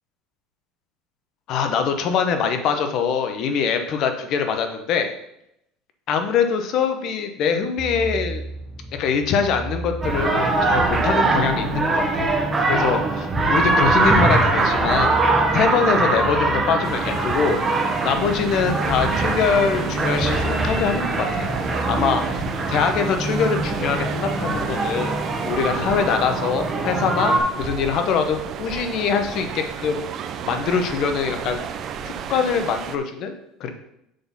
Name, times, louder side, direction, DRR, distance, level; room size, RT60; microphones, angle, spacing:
voice 1, 1.5-5.1 6.1-8.4 8.9-12.3 12.6-15.2 15.5-17.6 18.0-21.5 21.9-22.4 22.7-25.2 25.4-30.0 30.4-31.6 32.0-33.3 33.6-33.7, left 6 dB, 55° left, 7 dB, 1.0 m, -23 dB
sound 1, 7.8-24.3, equal, ahead, 1.0 m, -36 dB
sound 2, 10.0-27.4, right 2 dB, 20° right, 1.3 m, -22 dB
sound 3, 16.8-33.0, right 7 dB, 45° right, 0.6 m, -33 dB
6.7 x 4.0 x 5.6 m, 0.80 s
supercardioid pair, 110°, 0 cm